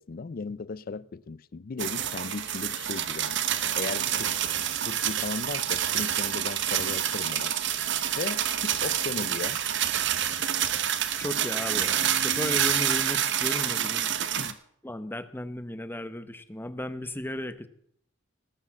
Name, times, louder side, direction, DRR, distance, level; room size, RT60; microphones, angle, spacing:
voice 1, 0.0-3.4 3.8-4.3 4.8-7.5 8.2-9.6 10.1-10.2 14.2-14.6, left 4 dB, 45° left, 0.4 m, -36 dB
sound 1, 1.8-14.5, right 10 dB, 65° right, 1.0 m, -28 dB
voice 2, 11.2-14.1 14.8-17.7, left 1 dB, 10° left, 0.8 m, -35 dB
19.0 x 6.6 x 7.2 m
head